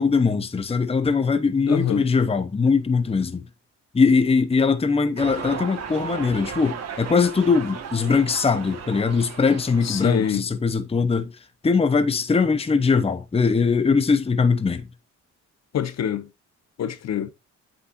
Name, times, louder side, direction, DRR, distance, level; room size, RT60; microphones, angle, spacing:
voice 1, 0.0-3.4 3.9-11.3 11.6-14.9, left 5 dB, 20° left, 0.8 m, -21 dB
voice 2, 1.7-2.0 9.8-10.4 15.7-16.3 16.8-17.3, left 9 dB, 60° left, 1.0 m, -25 dB
sound 1, 5.2-10.4, right 7 dB, 55° right, 1.6 m, -36 dB
8.0 x 5.8 x 2.6 m
cardioid pair, 90°, 30 cm